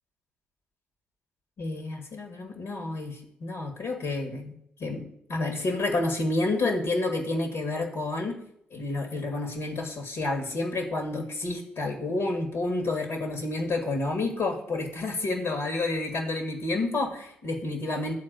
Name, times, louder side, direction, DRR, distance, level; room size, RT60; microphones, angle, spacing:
voice 1, 1.6-8.4 8.7-18.1, left 2 dB, 65° left, 4 dB, 1.8 m, -29 dB
12.0 x 4.3 x 8.0 m, 0.73 s
hypercardioid pair, 40°, 5 cm